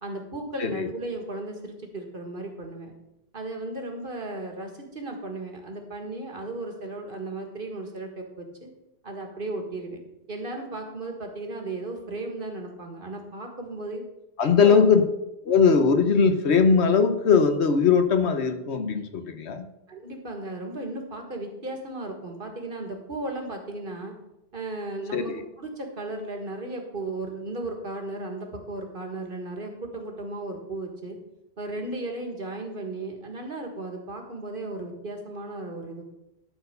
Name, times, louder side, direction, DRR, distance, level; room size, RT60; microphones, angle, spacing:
voice 1, 0.0-2.9 3.3-8.7 9.0-10.0 10.3-14.0 14.4-14.9 19.9-24.1 24.5-31.2 31.6-36.0, right 2 dB, 55° right, 3 dB, 1.9 m, -35 dB
voice 2, 14.4-15.0 15.4-19.7 25.1-25.4, left 5 dB, 85° left, 8 dB, 1.3 m, -20 dB
12.5 x 4.5 x 6.7 m, 0.90 s
omnidirectional pair, 1.1 m